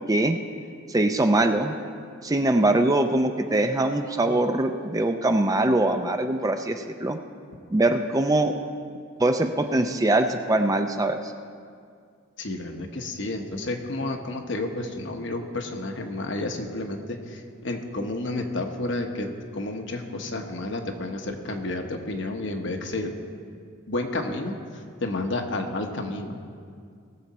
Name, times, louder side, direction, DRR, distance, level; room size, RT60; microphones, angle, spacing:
voice 1, 0.9-1.7 2.2-7.2 7.7-8.5 9.2-11.2, right 2 dB, 15° right, 6 dB, 0.4 m, -22 dB
voice 2, 12.4-23.1 23.9-26.4, left 2 dB, 60° left, 4 dB, 1.1 m, -31 dB
19.0 x 7.2 x 4.2 m, 2.2 s
head